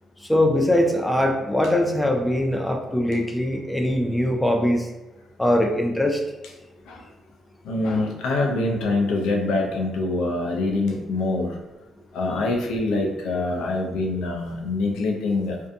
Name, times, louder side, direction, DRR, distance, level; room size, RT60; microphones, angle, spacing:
voice 1, 0.2-4.9 5.4-6.2, left 1 dB, 5° left, 2 dB, 0.3 m, -22 dB
voice 2, 7.6-11.5 12.1-15.6, left 2 dB, 85° left, 0 dB, 0.5 m, -24 dB
2.6 x 2.2 x 2.5 m, 1.1 s
cardioid pair, 90°, 0 cm